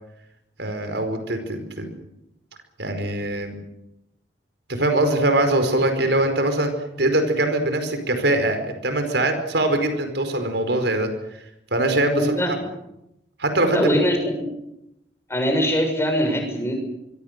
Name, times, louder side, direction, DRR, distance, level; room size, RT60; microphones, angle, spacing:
voice 1, 0.6-1.9 2.8-3.6 4.7-6.7 7.0-11.1 11.7-12.6 13.4-13.8, right 1 dB, 75° right, 7 dB, 5.0 m, -22 dB
voice 2, 12.1-12.7 13.7-14.5 15.3-16.7, equal, 15° left, 4 dB, 6.7 m, -22 dB
25.5 x 24.5 x 6.8 m, 0.85 s
head